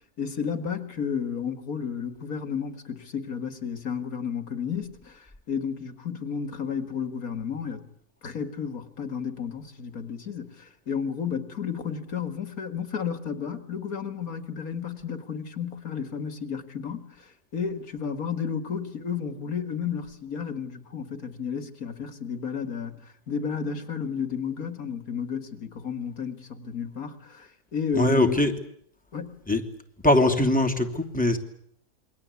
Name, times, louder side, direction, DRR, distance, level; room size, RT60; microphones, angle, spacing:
voice 1, 0.2-7.8 8.2-28.4 29.1-29.4, left 7 dB, 70° left, 2.4 m, -32 dB
voice 2, 27.9-28.5 29.5-29.6 30.0-31.4, left 1 dB, 5° left, 2.9 m, -21 dB
28.0 x 23.5 x 8.4 m
omnidirectional pair, 1.5 m